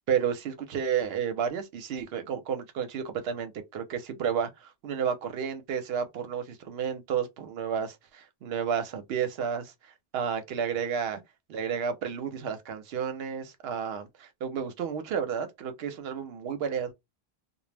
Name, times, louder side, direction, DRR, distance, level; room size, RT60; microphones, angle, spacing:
voice 1, 0.1-9.7 10.1-11.2 11.5-16.9, right 7 dB, 75° right, 0.8 m, -31 dB
2.2 x 2.0 x 3.2 m
omnidirectional pair, 1.1 m